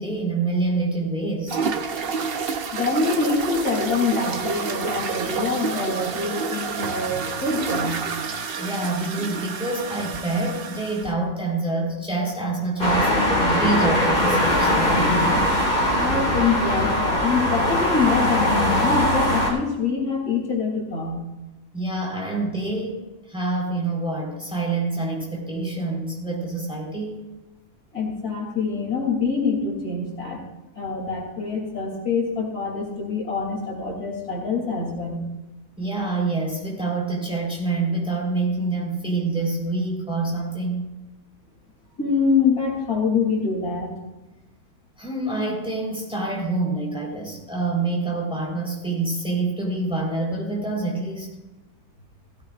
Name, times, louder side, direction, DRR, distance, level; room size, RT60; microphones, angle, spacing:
voice 1, 0.0-1.6 8.6-15.1 21.7-23.0 23.3-27.2 35.8-40.9 45.0-51.3, right 2 dB, 5° right, -2 dB, 3.7 m, -26 dB
sound 1, 1.5-11.1, right 5 dB, 45° right, 0.9 m, -29 dB
voice 2, 2.7-8.0 16.0-21.2 27.9-30.4 30.8-35.2 42.0-43.9, left 4 dB, 65° left, -1 dB, 3.2 m, -25 dB
sound 2, 12.8-19.5, left 1 dB, 30° left, 3.7 m, -21 dB
16.0 x 14.5 x 2.4 m, 1.1 s
omnidirectional pair, 1.7 m